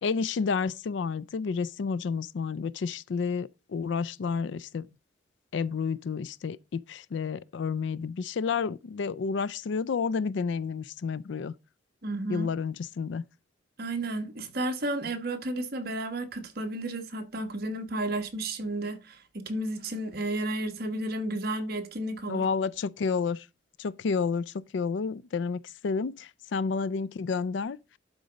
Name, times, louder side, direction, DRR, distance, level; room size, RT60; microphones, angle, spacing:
voice 1, 0.0-4.9 5.5-11.5 12.3-13.2 22.3-23.5 23.8-27.8, left 5 dB, 65° left, 0.4 m, -30 dB
voice 2, 12.0-12.5 13.8-22.4, right 1 dB, 50° right, 1.4 m, -32 dB
11.5 x 4.0 x 5.1 m
head